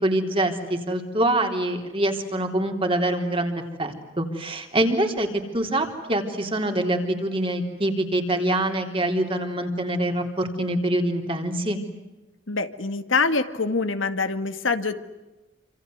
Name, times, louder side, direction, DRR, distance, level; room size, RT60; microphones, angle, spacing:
voice 1, 0.0-11.8, right 1 dB, 25° right, 4 dB, 3.6 m, -25 dB
voice 2, 12.5-14.9, left 4 dB, 85° left, 9 dB, 2.0 m, -25 dB
28.0 x 26.5 x 8.0 m, 1.1 s
head